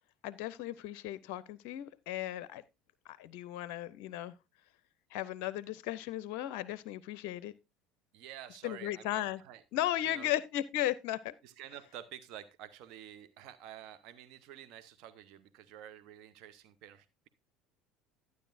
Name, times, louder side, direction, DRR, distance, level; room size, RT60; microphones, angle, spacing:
voice 1, 0.2-2.6 3.1-4.3 5.1-7.5 8.6-9.4 9.7-11.3, left 13 dB, 60° left, 0.5 m, -36 dB
voice 2, 8.1-9.6 10.0-10.3 11.4-17.3, right 11 dB, 55° right, 0.8 m, -50 dB
12.0 x 9.3 x 2.6 m
figure-of-eight pair, 65°, 0 cm